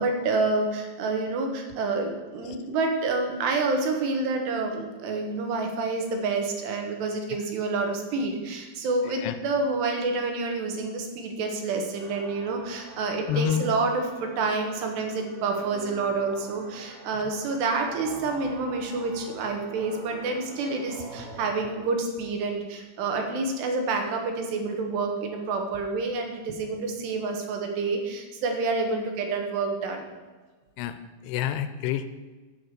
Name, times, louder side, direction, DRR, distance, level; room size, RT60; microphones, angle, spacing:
voice 1, 0.0-30.1, right 3 dB, 75° right, 3 dB, 3.3 m, -28 dB
sound 1, 12.0-21.8, right 3 dB, 90° right, 1.3 m, -45 dB
voice 2, 13.3-13.7 17.1-17.4 28.8-28.9 30.8-32.0, left 9 dB, 80° left, 10 dB, 2.5 m, -29 dB
8.8 x 8.0 x 6.7 m, 1.3 s
omnidirectional pair, 5.1 m